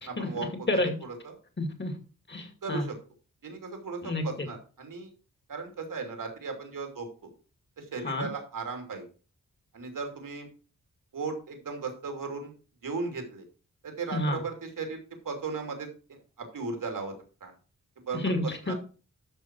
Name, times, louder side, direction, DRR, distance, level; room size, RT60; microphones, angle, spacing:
voice 1, 0.0-0.7 1.0-1.4 2.6-3.0 3.4-5.1 5.5-7.3 7.8-9.0 9.7-10.5 11.1-12.5 12.8-13.4 13.8-15.0 15.2-17.1 17.4-17.5 18.1-18.3 18.6-18.7, right 4 dB, 85° right, 4 dB, 2.8 m, -36 dB
voice 2, 1.6-2.0 2.3-2.9 4.0-4.5 8.0-8.3 14.1-14.4 18.2-18.7, left 1 dB, 35° left, 5 dB, 2.3 m, -29 dB
12.5 x 5.4 x 4.6 m, 0.36 s
wide cardioid pair, 115°, 32 cm